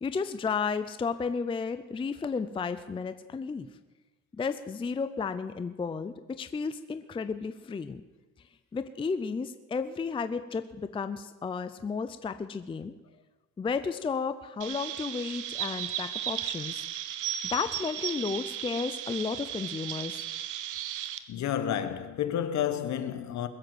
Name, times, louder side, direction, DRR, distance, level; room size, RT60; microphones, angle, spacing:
voice 1, 0.0-3.7 4.4-8.0 8.7-12.9 13.6-16.8 17.4-20.2, left 5 dB, 15° left, 0.5 m, -33 dB
Chirp tweet, 14.6-21.2, right 11 dB, 70° right, 1.1 m, -35 dB
voice 2, 21.3-23.5, left 9 dB, 60° left, 1.4 m, -30 dB
21.0 x 7.7 x 7.9 m
cardioid pair, 140°, 32 cm